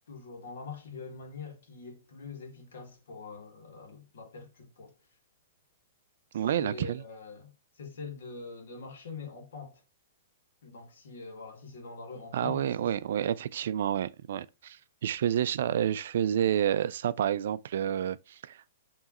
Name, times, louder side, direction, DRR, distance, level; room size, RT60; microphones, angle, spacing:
voice 1, 0.1-4.9 6.6-9.8 10.6-13.3, left 4 dB, 70° left, 1.6 m, -44 dB
voice 2, 6.3-7.0 12.3-18.8, right 10 dB, 55° right, 0.3 m, -29 dB
4.7 x 3.0 x 2.9 m
hypercardioid pair, 170°, 0 cm